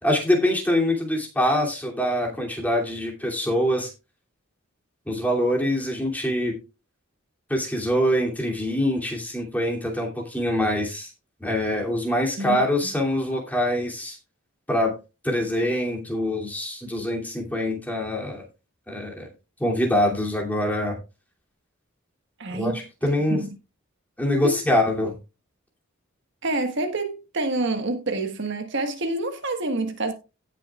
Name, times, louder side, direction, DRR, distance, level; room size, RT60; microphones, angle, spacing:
voice 1, 0.0-3.9 5.1-6.6 7.5-11.1 11.4-14.2 14.7-14.9 15.2-18.4 18.9-19.3 19.6-21.0 22.5-23.4 24.2-25.1, left 1 dB, 10° left, 2.7 m, -24 dB
voice 2, 22.4-22.8 23.3-23.5 24.4-24.5 26.4-30.1, right 2 dB, 60° right, 1.5 m, -27 dB
17.0 x 6.8 x 2.4 m
head